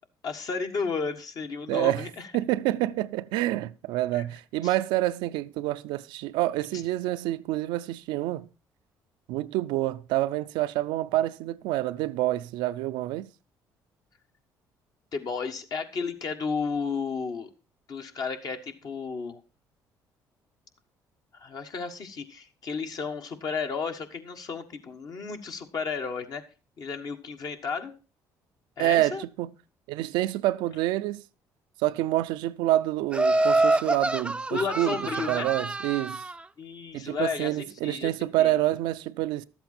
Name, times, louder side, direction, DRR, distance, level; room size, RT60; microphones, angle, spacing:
voice 1, 0.2-2.3 4.1-4.2 4.6-4.7 6.7-6.8 15.1-17.5 17.9-19.4 21.3-26.4 26.8-27.9 28.8-29.2 34.5-35.5 36.6-38.1 38.4-38.5, left 5 dB, 55° left, 1.5 m, -33 dB
voice 2, 1.7-8.5 9.3-13.3 28.8-29.5 29.9-31.2 31.8-35.0 35.3-36.2 36.9-39.4, right 15 dB, 85° right, 0.4 m, -27 dB
Laughter, 33.1-36.3, right 2 dB, 15° right, 0.5 m, -26 dB
12.0 x 8.0 x 4.2 m
supercardioid pair, 80°, 8 cm